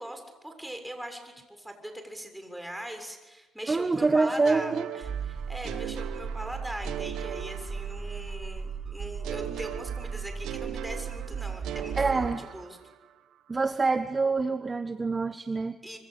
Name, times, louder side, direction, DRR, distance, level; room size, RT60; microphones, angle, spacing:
voice 1, 0.0-12.8 15.8-16.0, right 1 dB, 5° right, 5 dB, 7.0 m, -40 dB
voice 2, 3.7-4.9 11.9-12.4 13.5-15.8, right 3 dB, 30° right, 9 dB, 1.3 m, -26 dB
sound 1, 4.4-8.4 9.2-13.1, right 11 dB, 90° right, 1.2 m, -39 dB
sound 2, 5.0-12.3, right 6 dB, 50° right, 3.4 m, -36 dB
26.0 x 25.0 x 8.7 m, 1.1 s
cardioid pair, 90°, 0 cm